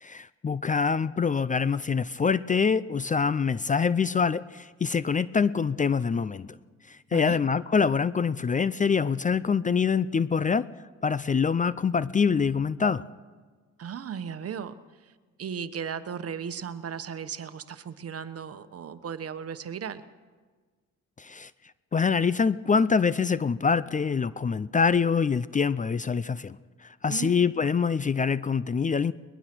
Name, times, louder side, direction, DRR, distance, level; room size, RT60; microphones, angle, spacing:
voice 1, 0.0-6.6 6.9-10.7 11.0-13.0 21.2-21.5 21.9-26.6 26.8-29.1, left 5 dB, 25° left, 17 dB, 0.5 m, -25 dB
voice 2, 13.8-15.1 15.4-20.0 27.1-27.4, right 7 dB, 50° right, 11 dB, 1.2 m, -36 dB
22.0 x 20.5 x 6.1 m, 1.4 s
cardioid pair, 90°, 30 cm